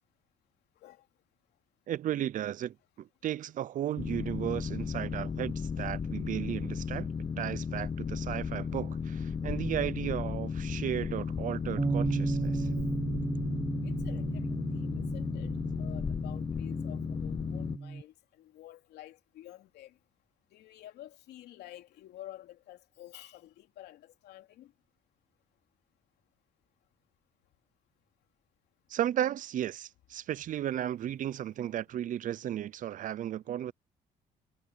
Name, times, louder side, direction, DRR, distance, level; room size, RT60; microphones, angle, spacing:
voice 1, 1.9-7.1 7.4-12.7 28.9-33.7, right 11 dB, 50° right, 0.6 m, -34 dB
Boat Water vehicle, 4.0-17.8, left 6 dB, 25° left, 0.5 m, -35 dB
Bass guitar, 11.8-18.0, right 4 dB, 20° right, 0.9 m, -35 dB
voice 2, 13.8-20.0 20.5-24.7 31.7-31.8, left 13 dB, 75° left, 3.0 m, -50 dB
cardioid pair, 110°, 17 cm